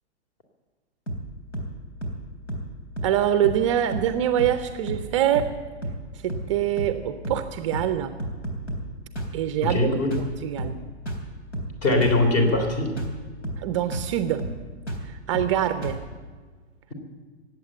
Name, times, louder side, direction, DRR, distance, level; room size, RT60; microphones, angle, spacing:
sound 1, 1.1-1.3 1.5-1.7 2.0-2.2 2.5-2.7 3.0-3.2 3.4-3.7 3.9-4.1 4.4-4.6 4.9-5.1 5.3-5.6 5.8-6.0 6.3-6.5 6.8-7.0 7.2-7.5 7.7-7.9 8.2-8.9 9.1-9.4 9.6-9.8 10.1-10.3 10.6-10.8 11.1-11.3 11.5-11.7 12.0-12.2 12.5-12.7 13.0-13.2 13.4-13.7 13.9-14.1 14.4-14.6 14.9-15.1 15.3-15.6 15.8-16.0, right 1 dB, 75° left, 3.5 m, -32 dB
voice 1, 3.0-5.5 6.1-8.2 9.3-10.8 13.6-14.5 15.0-16.0, right 11 dB, 30° right, 10 dB, 0.5 m, -25 dB
voice 2, 9.6-10.1 11.8-12.9, left 2 dB, 40° left, 5 dB, 3.2 m, -21 dB
18.5 x 8.3 x 9.0 m, 1.4 s
figure-of-eight pair, 115°, 34 cm